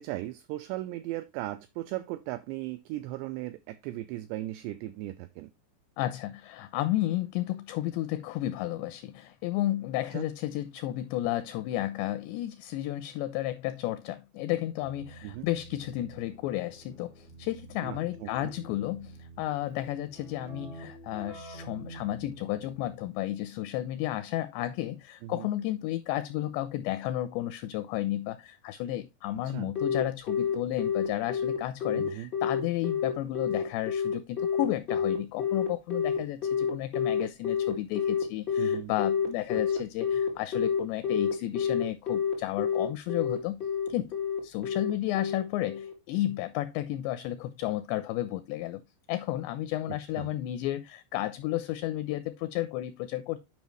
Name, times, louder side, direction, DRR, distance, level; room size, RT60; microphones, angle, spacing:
voice 1, 0.0-5.5 10.1-10.3 15.2-15.5 17.8-18.5 25.2-25.5 29.4-29.7 31.9-32.3 38.6-38.9 39.8-39.9 50.1-50.3, right 16 dB, 85° right, 2.5 m, -37 dB
voice 2, 6.0-43.6 43.9-44.1 44.4-48.8 49.1-53.4, left 14 dB, 85° left, 2.5 m, -32 dB
Keyboard (musical), 14.8-23.2, right 2 dB, 40° right, 1.3 m, -48 dB
Telephone, 29.7-45.9, left 7 dB, 40° left, 0.9 m, -28 dB
9.2 x 5.4 x 3.1 m
omnidirectional pair, 5.4 m